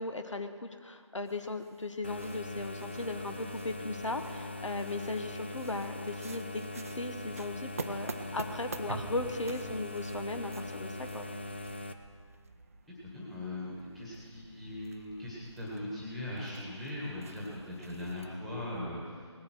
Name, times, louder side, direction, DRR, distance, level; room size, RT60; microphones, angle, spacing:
voice 1, 0.0-11.3, left 2 dB, 75° left, 8 dB, 1.1 m, -37 dB
sound 1, 1.2-18.9, right 3 dB, 30° right, 0.5 m, -50 dB
sound 2, 2.0-11.9, left 1 dB, 20° left, 0.4 m, -41 dB
sound 3, 8.9-13.3 13.7-13.8, right 3 dB, 60° right, 0.8 m, -47 dB
voice 2, 13.0-19.2, left 1 dB, ahead, -7 dB, 1.8 m, -40 dB
19.0 x 8.5 x 6.2 m, 2.1 s
figure-of-eight pair, 165°, 16 cm